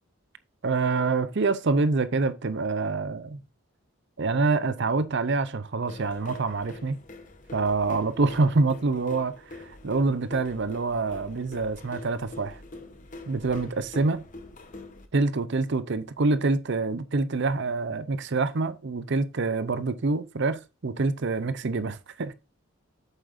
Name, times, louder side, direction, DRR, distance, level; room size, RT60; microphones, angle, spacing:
voice 1, 0.6-3.4 4.2-7.0 7.5-12.6 13.3-14.2 15.1-22.3, right 3 dB, 55° right, 0.6 m, -26 dB
sound 1, 5.9-15.1, left 2 dB, 35° left, 1.0 m, -45 dB
8.2 x 7.6 x 2.6 m
head